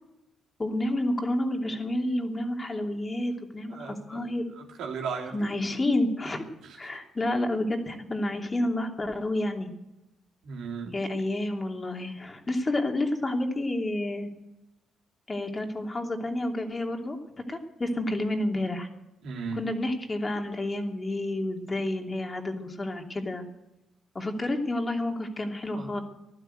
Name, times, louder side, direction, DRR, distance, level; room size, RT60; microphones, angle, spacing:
voice 1, 0.6-4.5 5.3-6.4 6.8-9.7 10.9-14.3 15.3-18.9 19.5-23.4 24.1-26.0, left 1 dB, 25° left, 3 dB, 2.9 m, -30 dB
voice 2, 3.7-4.3 4.6-5.3 6.6-6.8 10.4-10.9 19.2-19.6 25.7-25.9, right 5 dB, 80° right, -1 dB, 3.7 m, -36 dB
15.5 x 12.0 x 7.9 m, 0.92 s
cardioid pair, 90°, 0 cm